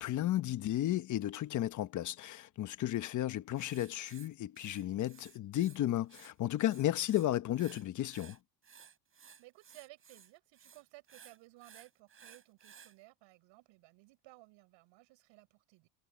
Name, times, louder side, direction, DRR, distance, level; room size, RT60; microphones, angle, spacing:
voice 1, 0.0-8.4, left 13 dB, 35° left, 1.2 m, -33 dB
Writing, 3.5-5.8 6.0-7.3 7.5-12.9, right 7 dB, 25° right, 6.7 m, -57 dB
voice 2, 9.4-15.9, right 21 dB, 60° right, 7.3 m, -58 dB
cardioid pair, 135°, 49 cm